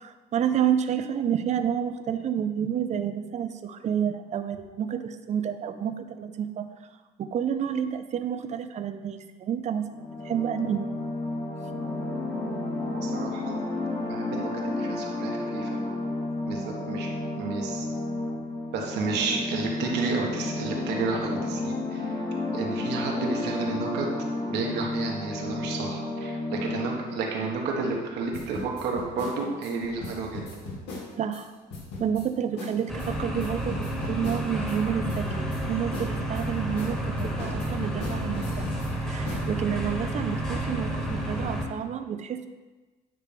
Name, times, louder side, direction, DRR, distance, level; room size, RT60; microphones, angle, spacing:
voice 1, 0.0-6.7 7.2-9.8 10.2-10.9 31.2-31.5 32.0-38.7 39.1-42.5, right 8 dB, 45° right, 9 dB, 0.6 m, -29 dB
sound 1, 9.9-27.3, left 2 dB, 25° left, 1.4 m, -32 dB
voice 2, 12.9-13.6 14.1-15.8 16.5-17.1 17.4-17.8 18.7-22.2 22.5-24.1 24.5-30.6, right 4 dB, 80° right, 0 dB, 1.5 m, -31 dB
sound 2, 28.3-31.4 31.7-32.3 32.6-32.7 33.0-34.8 35.1-35.6 35.9-38.9 39.3-39.4, left 3 dB, 85° left, 2.2 m, -38 dB
sound 3, 32.9-41.7, right 1 dB, 5° left, 1.4 m, -30 dB
9.6 x 3.3 x 5.2 m, 1.3 s
cardioid pair, 110°, 17 cm